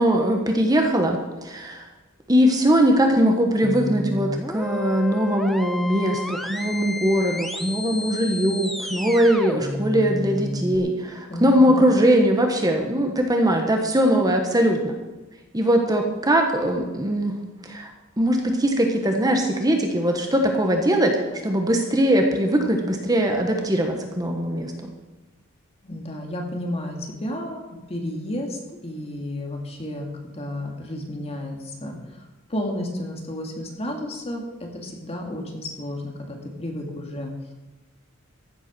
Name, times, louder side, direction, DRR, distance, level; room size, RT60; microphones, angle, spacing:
voice 1, 0.0-1.9 2.3-15.0 15.5-17.4 17.6-17.9 18.2-21.1 21.4-24.9, equal, 20° right, 3 dB, 1.3 m, -21 dB
sound 1, 3.6-10.8, left 1 dB, ahead, 0.7 m, -31 dB
voice 2, 11.3-11.9 25.8-27.6 27.9-32.0 32.5-34.4 34.8-37.3, left 1 dB, 30° left, 1 dB, 2.2 m, -32 dB
15.0 x 8.1 x 6.2 m, 1.1 s
head